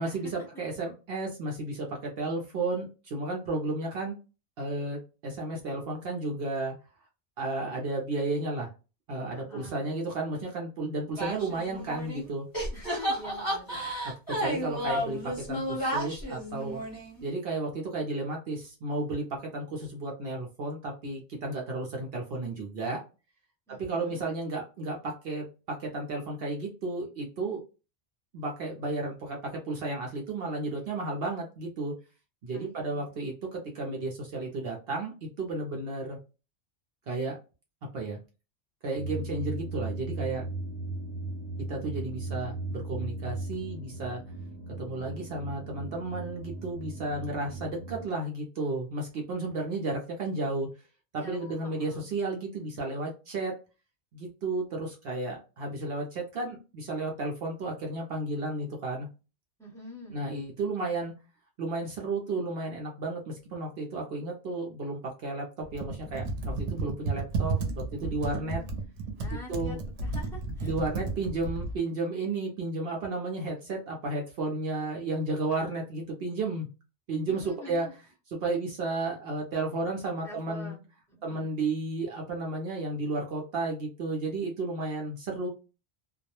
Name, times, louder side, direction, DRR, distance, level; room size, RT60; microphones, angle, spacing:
voice 1, 0.0-4.2 4.6-6.7 7.4-8.7 9.1-12.4 14.4-16.8 17.2-23.0 23.7-27.6 28.3-31.9 32.4-36.2 37.1-37.4 37.9-38.2 38.8-40.5 41.7-44.2 44.8-50.7 51.1-53.6 54.1-59.1 60.1-61.1 61.6-68.6 69.5-69.8 70.6-76.7 77.1-78.0 78.3-80.7 81.2-85.5, right 2 dB, 65° right, 0 dB, 0.8 m, -33 dB
voice 2, 9.3-9.9 12.7-13.8 23.7-24.3 32.5-33.3 51.1-52.1 59.6-60.2 68.2-68.7 69.2-70.7 77.3-77.9 80.2-80.8 81.1-81.5, left 1 dB, 5° left, -4 dB, 0.9 m, -46 dB
sound 1, 11.2-12.3 12.5-17.3, equal, 20° left, 1.2 m, -32 dB
sound 2, 39.0-48.1, right 2 dB, 45° left, 0.7 m, -37 dB
Computer keyboard, 65.6-71.8, right 3 dB, 90° right, 0.9 m, -33 dB
2.2 x 2.1 x 2.8 m, 0.31 s
omnidirectional pair, 1.2 m